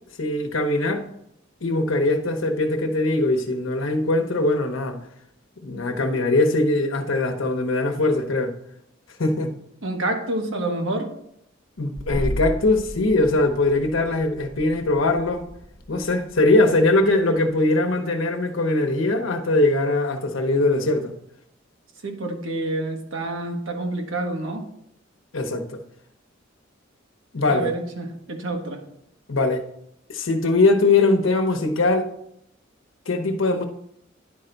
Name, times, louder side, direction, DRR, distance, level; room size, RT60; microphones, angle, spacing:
voice 1, 0.2-1.0 1.6-5.0 5.6-8.5 9.2-9.5 11.8-15.4 15.9-21.1 25.3-25.6 27.3-27.7 29.3-29.6 30.1-32.1 33.1-33.7, left 2 dB, 85° left, 1.0 m, -21 dB
voice 2, 9.8-11.1 22.0-24.6 27.5-28.8, right 2 dB, 90° right, 1.3 m, -28 dB
sound 1, 12.0-17.5, equal, 35° left, 0.9 m, -34 dB
10.0 x 4.5 x 3.9 m
head